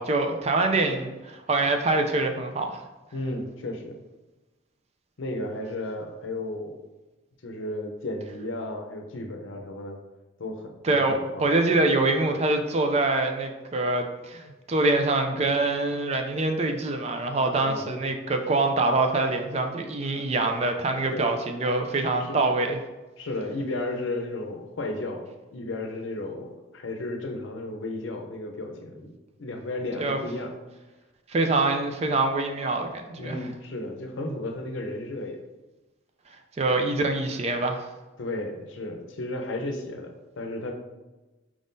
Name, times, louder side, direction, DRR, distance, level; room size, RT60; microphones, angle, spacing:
voice 1, 0.0-2.8 10.8-22.8 30.0-30.2 31.3-33.4 36.6-37.9, right 2 dB, 30° right, 4 dB, 0.4 m, -25 dB
voice 2, 3.1-4.0 5.2-6.8 7.4-10.0 10.4-11.4 14.4-14.5 16.5-16.6 17.6-17.9 20.9-21.3 22.0-22.4 23.2-26.5 26.7-29.1 29.4-30.5 33.2-35.4 38.2-40.7, left 2 dB, 70° left, 4 dB, 0.6 m, -34 dB
4.8 x 3.6 x 2.6 m, 1.1 s
head